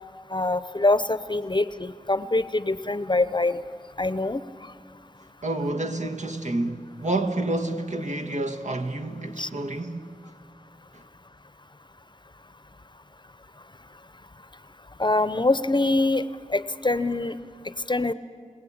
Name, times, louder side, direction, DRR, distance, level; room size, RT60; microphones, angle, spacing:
voice 1, 0.3-3.6 4.0-4.4 9.4-9.5 15.0-16.2 16.5-17.4 17.9-18.1, left 2 dB, 35° left, 0.7 m, -24 dB
voice 2, 5.4-10.1, right 2 dB, 65° right, 1.5 m, -29 dB
28.5 x 17.5 x 8.7 m
wide cardioid pair, 40°, 13 cm